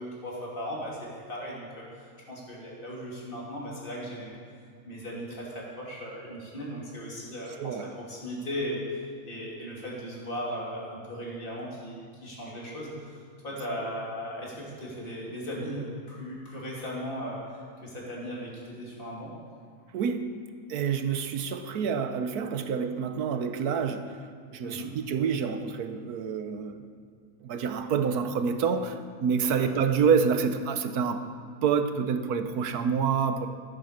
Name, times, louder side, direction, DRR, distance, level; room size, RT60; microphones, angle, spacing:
voice 1, 0.0-4.3 4.8-8.9 9.3-19.3 24.6-24.9 29.5-29.7, equal, 35° left, -4 dB, 2.9 m, -37 dB
voice 2, 7.6-7.9 19.9-20.3 20.7-26.9 27.4-31.3 31.6-33.5, right 6 dB, 75° right, 9 dB, 1.3 m, -27 dB
14.5 x 9.5 x 6.6 m, 2.2 s
omnidirectional pair, 1.7 m